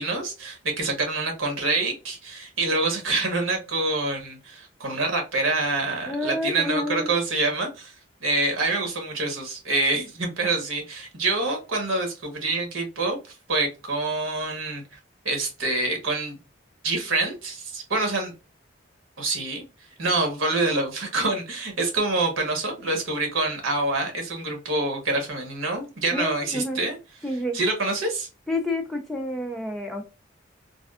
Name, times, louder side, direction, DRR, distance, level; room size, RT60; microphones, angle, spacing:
voice 1, 0.0-7.9 8.2-14.8 15.2-16.4 16.8-18.3 19.2-19.6 20.0-27.0 27.5-28.3, right 2 dB, 85° right, 1.2 m, -26 dB
voice 2, 6.0-7.1 26.1-26.8 27.2-27.6 28.5-30.0, left 1 dB, ahead, 0.5 m, -29 dB
3.4 x 2.4 x 2.3 m
head